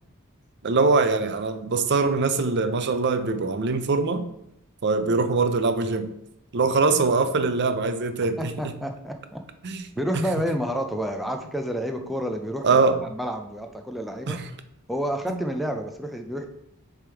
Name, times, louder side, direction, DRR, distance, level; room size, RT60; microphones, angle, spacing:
voice 1, 0.6-4.3 4.8-6.1 6.5-8.7 9.6-9.9 12.6-13.0 14.3-14.5 15.3-15.4, right 4 dB, 50° right, 9 dB, 0.5 m, -23 dB
voice 2, 8.4-9.4 10.0-14.4 14.9-16.5, equal, ahead, 3 dB, 0.5 m, -29 dB
7.0 x 3.5 x 4.4 m, 0.79 s
head